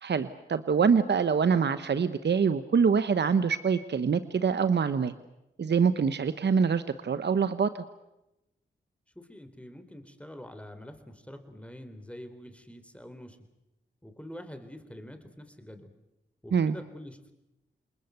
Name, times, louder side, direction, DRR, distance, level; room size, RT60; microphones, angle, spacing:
voice 1, 0.0-5.1 5.6-7.8 16.5-16.7, right 6 dB, 60° right, 12 dB, 1.1 m, -25 dB
voice 2, 9.2-13.4 14.0-15.9 16.4-17.3, left 1 dB, 5° left, 9 dB, 3.9 m, -46 dB
28.0 x 21.0 x 8.1 m, 0.92 s
supercardioid pair, 40°, 20 cm